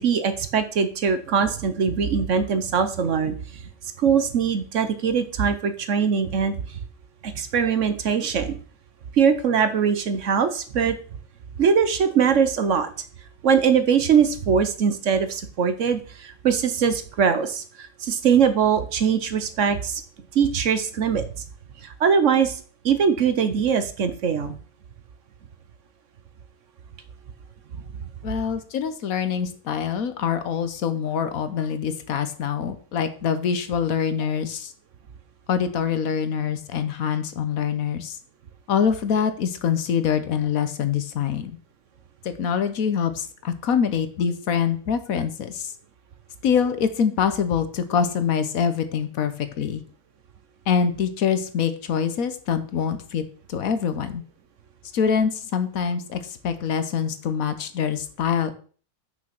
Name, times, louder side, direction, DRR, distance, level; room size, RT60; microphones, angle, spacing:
voice 1, 0.0-3.6 4.0-6.8 7.2-8.6 9.1-11.0 11.6-12.9 13.4-20.0 20.3-21.3 21.8-22.6 22.8-24.5, right 6 dB, 60° right, 10 dB, 1.1 m, -22 dB
voice 2, 28.2-34.7 35.5-38.2 38.7-41.6 42.2-45.7 46.4-49.8 50.7-53.2 53.5-54.2 54.9-58.5, left 7 dB, 70° left, 10 dB, 1.3 m, -25 dB
6.2 x 6.2 x 5.9 m, 0.41 s
omnidirectional pair, 1.6 m